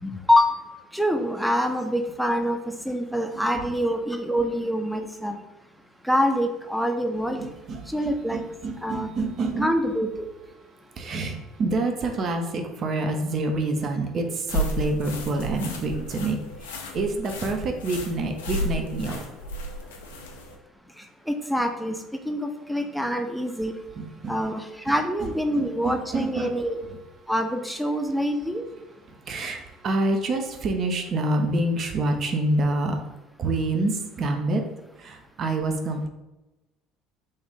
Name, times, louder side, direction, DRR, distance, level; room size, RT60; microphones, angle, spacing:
voice 1, 0.0-0.6 0.9-2.6 2.8-5.4 6.0-7.5 7.9-8.4 8.8-9.1 9.6-10.3 21.3-22.0 22.2-23.7 24.3-26.8 27.3-28.6, equal, ahead, 4 dB, 0.5 m, -25 dB
voice 2, 7.4-9.7 10.6-19.2 24.0-24.4 24.9-25.0 25.2-27.0 29.1-33.1 33.4-34.6 35.0-36.1, right 2 dB, 45° right, 4 dB, 0.6 m, -27 dB
sound 1, 14.5-20.5, equal, 75° left, 0.5 m, -33 dB
3.8 x 2.5 x 3.5 m, 1.0 s
figure-of-eight pair, 60°, 0 cm